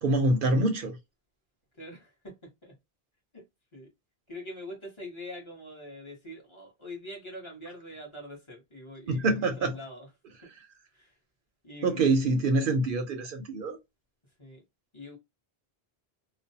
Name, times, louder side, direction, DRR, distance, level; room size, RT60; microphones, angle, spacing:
voice 1, 0.0-0.9 9.1-9.7 11.8-13.8, right 2 dB, 65° right, 0.7 m, -25 dB
voice 2, 1.8-2.3 2.6-2.7 3.3-3.4 3.7-3.9 4.3-10.1 11.0-11.1 11.6-12.4 14.4-14.6 14.9-15.2, left 1 dB, 30° left, 0.9 m, -44 dB
2.4 x 2.1 x 2.6 m
omnidirectional pair, 1.0 m